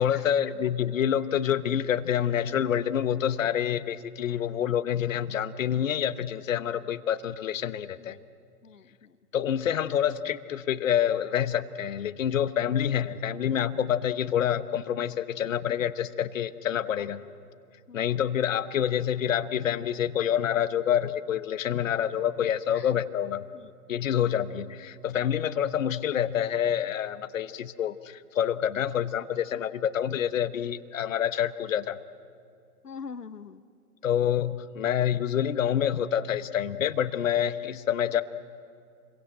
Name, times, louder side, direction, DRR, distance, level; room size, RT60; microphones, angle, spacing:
voice 1, 0.0-8.2 9.3-17.2 17.9-23.4 23.9-32.0 34.0-38.2, left 9 dB, 55° left, 14 dB, 1.1 m, -27 dB
voice 2, 8.6-9.2 17.0-17.1 17.9-18.2 22.7-22.9 23.5-24.3 32.8-33.6, left 5 dB, 80° left, 12 dB, 1.0 m, -45 dB
28.5 x 23.0 x 7.8 m, 2.3 s
figure-of-eight pair, 120°, 46 cm